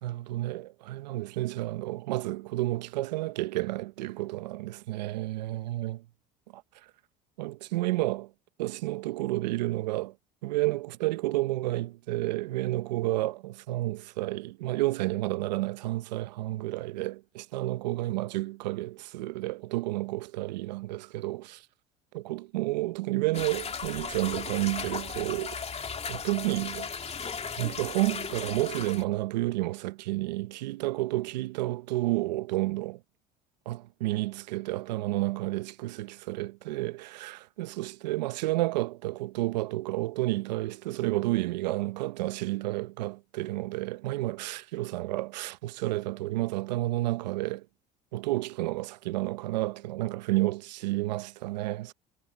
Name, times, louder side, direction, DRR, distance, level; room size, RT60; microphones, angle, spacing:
voice 1, 0.0-6.1 6.5-6.9 7.4-8.3 8.6-10.2 10.4-21.7 22.1-25.6 26.1-26.9 27.6-33.0 33.7-47.7 48.1-51.9, right 18 dB, 90° right, 0.8 m, -31 dB
sound 1, 23.3-29.0, left 6 dB, 30° left, 2.7 m, -36 dB
hypercardioid pair, 80°, 21 cm